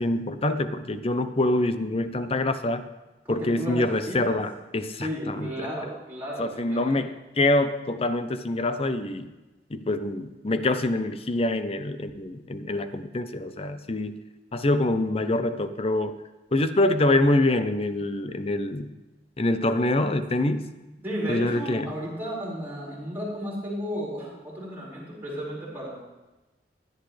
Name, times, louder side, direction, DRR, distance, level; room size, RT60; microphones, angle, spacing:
voice 1, 0.0-2.8 3.3-5.5 6.4-7.1 7.4-9.3 9.7-14.2 14.5-16.2 16.5-18.9 19.4-20.7 21.3-21.9, left 2 dB, 35° left, 10 dB, 0.7 m, -25 dB
voice 2, 3.3-4.4 5.0-7.0 21.0-26.0, equal, 10° right, -7 dB, 5.1 m, -33 dB
16.0 x 10.5 x 3.3 m, 1.1 s
head